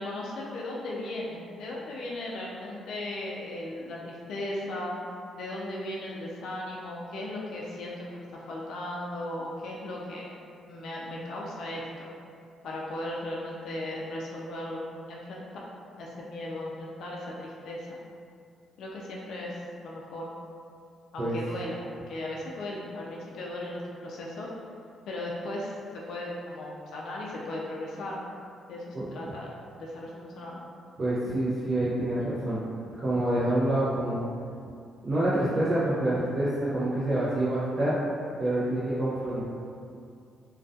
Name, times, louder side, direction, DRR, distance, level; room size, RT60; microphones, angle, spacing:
voice 1, 0.0-5.0 5.4-10.4 10.7-12.1 12.6-15.7 16.0-18.0 18.8-20.3 21.1-24.5 25.1-28.2 28.7-29.5 29.8-30.6, left 1 dB, 70° left, -4 dB, 0.3 m, -37 dB
voice 2, 31.0-32.6 33.0-34.3 35.0-38.0 38.4-39.5, right 1 dB, 40° right, -9 dB, 0.4 m, -27 dB
2.2 x 2.2 x 2.6 m, 2.4 s
cardioid pair, 90°, 0 cm